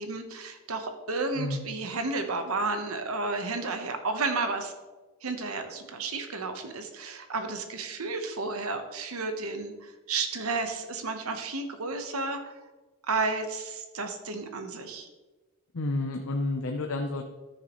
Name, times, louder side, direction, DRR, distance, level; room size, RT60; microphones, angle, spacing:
voice 1, 0.0-4.7 5.2-12.5 13.0-15.1, right 3 dB, 90° right, 6 dB, 1.1 m, -32 dB
voice 2, 1.4-1.7 15.7-17.2, left 2 dB, 80° left, 3 dB, 0.7 m, -30 dB
13.5 x 6.6 x 3.1 m, 1.2 s
head